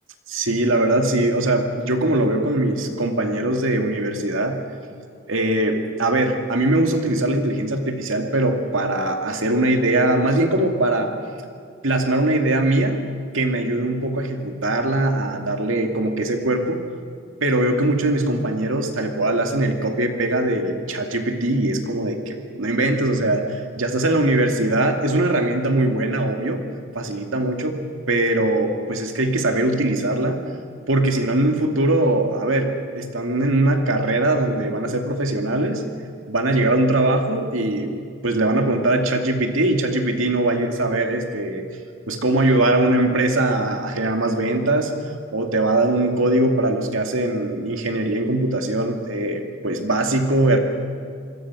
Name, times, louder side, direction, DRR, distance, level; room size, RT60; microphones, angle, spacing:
voice 1, 0.3-4.6 5.3-11.1 11.8-13.0 13.3-16.8 17.4-26.6 26.9-27.8 28.1-30.4 30.9-35.8 36.3-37.9 38.2-41.6 42.1-44.9 45.3-50.6, right 2 dB, 80° right, 4 dB, 2.4 m, -21 dB
26.5 x 21.5 x 6.2 m, 2.2 s
head